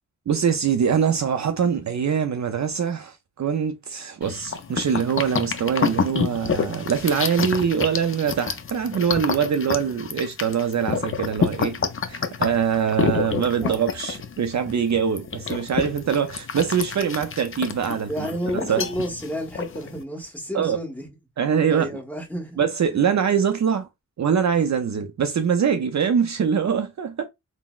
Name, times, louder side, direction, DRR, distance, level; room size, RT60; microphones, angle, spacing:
voice 1, 0.3-11.8 12.1-18.3 18.7-18.9 20.5-20.8 21.4-22.0 22.6-23.9 24.2-27.3, right 7 dB, 60° right, 0.4 m, -23 dB
sound 1, 4.2-20.0, left 6 dB, 40° left, 0.4 m, -28 dB
voice 2, 18.1-21.1 21.7-22.6 22.9-23.0, equal, 5° left, 1.3 m, -31 dB
3.7 x 2.0 x 2.3 m
wide cardioid pair, 65°, 32 cm